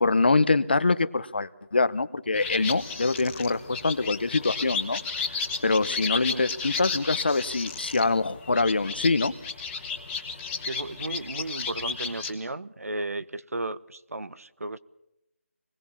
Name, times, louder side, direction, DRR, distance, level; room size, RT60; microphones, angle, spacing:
voice 1, 0.0-5.0 5.3-9.3, left 3 dB, 45° left, 12 dB, 1.0 m, -24 dB
sound 1, 2.3-12.3, left 5 dB, 5° left, 1.0 m, -33 dB
voice 2, 10.7-14.8, right 2 dB, 80° right, 15 dB, 1.2 m, -34 dB
27.0 x 20.5 x 7.2 m, 0.86 s
figure-of-eight pair, 180°, 8 cm